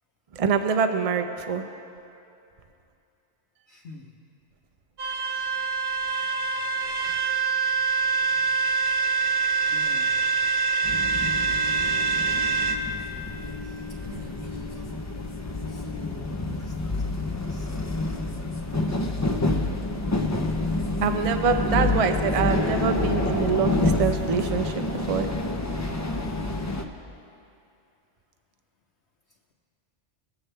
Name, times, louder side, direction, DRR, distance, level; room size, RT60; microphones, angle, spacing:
voice 1, 0.3-1.6 21.0-25.3, right 6 dB, 40° right, 6 dB, 0.5 m, -25 dB
voice 2, 3.7-4.1 9.6-10.2 13.6-15.0 15.7-19.3 21.2-21.5, left 3 dB, 70° left, -4 dB, 1.2 m, -47 dB
sound 1, 5.0-12.8, right 5 dB, 60° right, 1.0 m, -25 dB
sound 2, 10.8-26.8, left 2 dB, 20° left, 0.4 m, -28 dB
19.0 x 7.9 x 3.3 m, 2.6 s
omnidirectional pair, 1.2 m